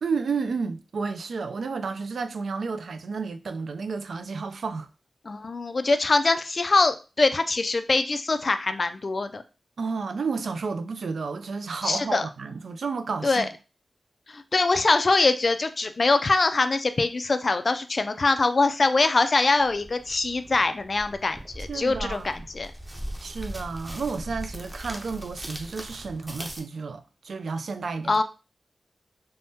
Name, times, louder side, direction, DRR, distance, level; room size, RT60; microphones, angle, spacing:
voice 1, 0.0-4.9 9.8-13.5 21.7-22.5 23.2-28.2, right 4 dB, 80° right, 0.3 m, -31 dB
voice 2, 5.3-9.4 11.8-12.3 13.2-13.5 14.3-22.7 28.1-28.2, left 3 dB, 45° left, 0.3 m, -23 dB
sound 1, 19.6-26.6, equal, 15° right, 0.6 m, -39 dB
3.5 x 2.1 x 2.7 m
wide cardioid pair, 95°, 0 cm